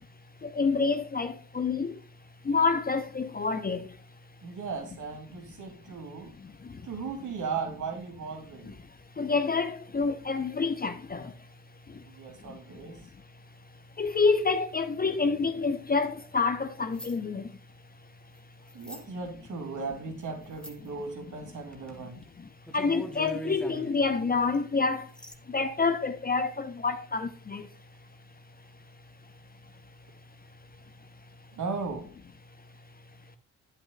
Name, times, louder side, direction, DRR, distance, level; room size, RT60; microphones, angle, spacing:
voice 1, 0.6-1.9 2.5-3.8 9.2-11.3 14.0-17.4 22.7-25.0 25.5-27.6, left 4 dB, 20° left, 0.8 m, -27 dB
voice 2, 4.4-6.3 6.8-8.7 12.0-13.0 18.7-22.2 31.6-32.1, right 4 dB, 45° right, 2.7 m, -37 dB
sound 1, 16.9-17.2 18.7-19.0 20.5-20.9 21.7-22.0 22.2-22.3 22.7-24.0 24.5-24.6 25.1-25.3, right 1 dB, ahead, 1.5 m, -41 dB
12.0 x 7.7 x 2.4 m
figure-of-eight pair, 45°, 41 cm